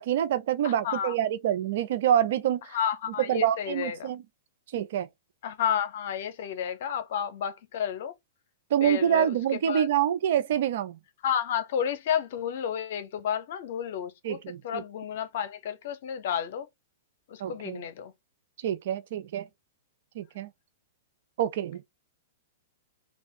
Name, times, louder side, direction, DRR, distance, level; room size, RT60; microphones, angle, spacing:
voice 1, 0.0-2.8 3.2-4.2 4.7-5.1 8.7-11.0 14.2-14.8 17.4-17.8 18.6-19.5 20.1-20.5 21.4-21.8, right 10 dB, 60° right, 0.6 m, -26 dB
voice 2, 0.6-1.1 2.7-4.1 5.4-8.1 8.8-9.3 9.7-9.9 11.2-14.4 14.6-16.7 17.3-18.1, left 8 dB, 60° left, 0.8 m, -31 dB
3.3 x 2.4 x 3.9 m
hypercardioid pair, 110°, 0 cm